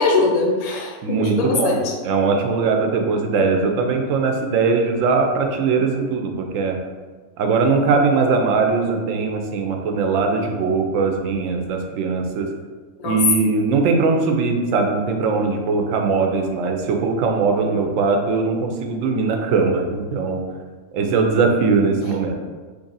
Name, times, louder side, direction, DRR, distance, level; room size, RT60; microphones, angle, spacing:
voice 1, 0.0-1.9 13.0-13.2 17.6-17.9, left 3 dB, 55° left, 0 dB, 0.4 m, -21 dB
voice 2, 1.0-1.7 2.0-6.8 7.4-12.5 13.0-20.4 20.9-22.4, right 4 dB, 80° right, 3 dB, 0.9 m, -20 dB
3.1 x 2.6 x 3.9 m, 1.4 s
omnidirectional pair, 1.4 m